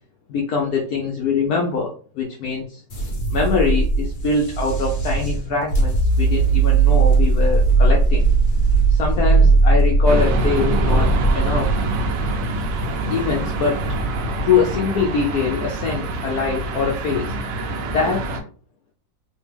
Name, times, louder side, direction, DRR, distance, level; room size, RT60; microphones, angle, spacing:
voice 1, 0.3-2.8 3.3-8.2 8.9-11.8 13.1-13.8 14.4-17.4 17.8-18.2, left 5 dB, 70° left, -1 dB, 0.9 m, -23 dB
sound 1, 2.9-17.1, right 3 dB, 45° left, 0.6 m, -19 dB
sound 2, 10.0-18.4, right 2 dB, 75° right, 1.2 m, -26 dB
3.4 x 2.2 x 3.3 m, 0.42 s
omnidirectional pair, 2.0 m